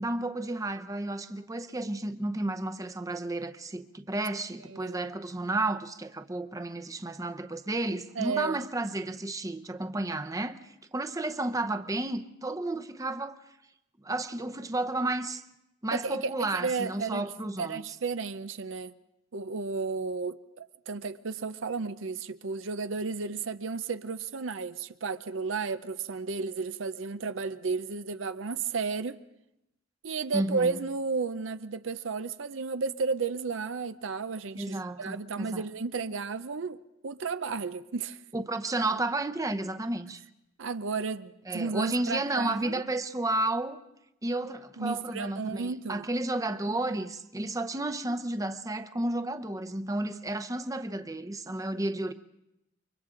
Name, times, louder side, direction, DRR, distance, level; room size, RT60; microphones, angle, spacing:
voice 1, 0.0-10.6 10.9-13.4 14.0-15.4 15.8-17.8 30.3-30.8 34.6-35.6 38.3-40.2 41.5-43.8 44.2-52.1, right 2 dB, 15° right, 0.8 m, -32 dB
voice 2, 4.7-5.1 8.2-8.7 15.9-17.3 17.6-18.9 19.3-29.2 30.0-38.2 40.6-42.8 44.8-46.1, right 4 dB, 80° right, 0.6 m, -33 dB
29.5 x 24.0 x 3.8 m
head